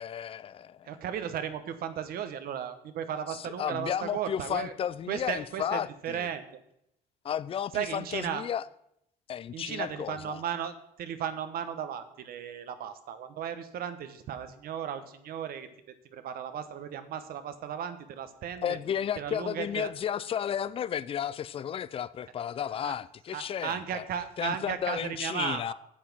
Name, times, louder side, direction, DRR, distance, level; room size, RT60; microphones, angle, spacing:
voice 1, 0.0-1.0 3.3-6.3 7.2-8.6 9.3-10.4 18.6-24.0 24.4-25.7, left 9 dB, 35° left, 0.4 m, -33 dB
voice 2, 0.8-4.7 5.1-6.5 7.7-8.4 9.5-15.7 16.1-18.8 19.2-19.9 22.8-23.0 23.3-25.7, right 8 dB, 65° right, 1.0 m, -35 dB
8.7 x 7.2 x 6.1 m
cardioid pair, 110°, 17 cm